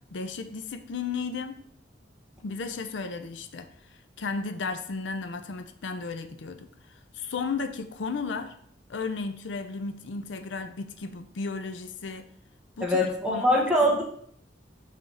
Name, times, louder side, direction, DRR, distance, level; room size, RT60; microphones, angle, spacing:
voice 1, 0.1-1.6 2.4-8.5 8.9-12.2 12.8-13.7, left 4 dB, 80° left, 9 dB, 0.5 m, -34 dB
voice 2, 12.8-14.0, equal, 5° right, -2 dB, 1.1 m, -23 dB
5.4 x 3.5 x 5.5 m, 0.64 s
head